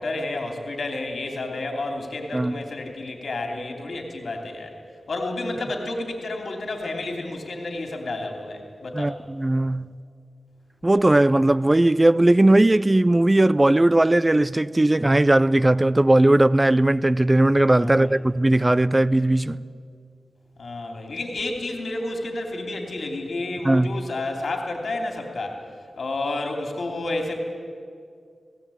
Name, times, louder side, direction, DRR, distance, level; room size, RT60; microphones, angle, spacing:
voice 1, 0.0-4.7 5.1-9.2 17.7-18.2 20.6-25.6 26.0-27.3, left 2 dB, 70° left, 2.9 m, -30 dB
voice 2, 8.9-10.0 10.8-19.6 23.6-23.9, right 1 dB, 25° right, 0.5 m, -18 dB
17.5 x 17.5 x 8.6 m
cardioid pair, 65°, 0 cm